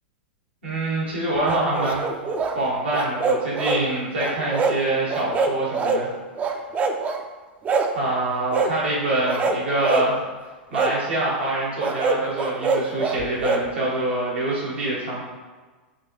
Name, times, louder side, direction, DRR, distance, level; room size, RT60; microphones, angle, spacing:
voice 1, 0.6-2.1 2.5-6.1 7.9-10.2 10.7-15.2, right 1 dB, 85° right, -6 dB, 1.4 m, -25 dB
sound 1, 1.4-2.6 2.9-3.8 4.2-4.8 5.1-6.0 6.4-7.2 7.6-7.9 8.5-8.7 9.2-10.1 10.7-11.0 11.8-13.6, right 4 dB, 25° right, 0.3 m, -24 dB
3.3 x 2.8 x 3.1 m, 1.3 s
hypercardioid pair, 105°, 6 cm